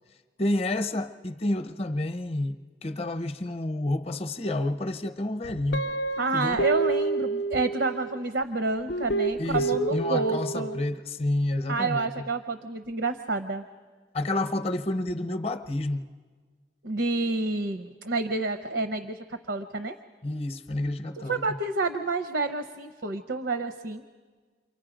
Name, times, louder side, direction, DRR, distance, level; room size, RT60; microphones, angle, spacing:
voice 1, 0.4-5.9 6.3-6.6 9.4-12.1 14.1-16.1 20.2-21.4, left 1 dB, 35° left, 0.7 m, -29 dB
Guitar, 5.7-8.2 8.9-10.8, right 2 dB, 65° left, 0.6 m, -29 dB
voice 2, 6.2-10.8 11.7-13.6 16.8-19.9 21.3-24.0, right 3 dB, 75° right, 0.7 m, -29 dB
28.5 x 24.0 x 5.1 m
head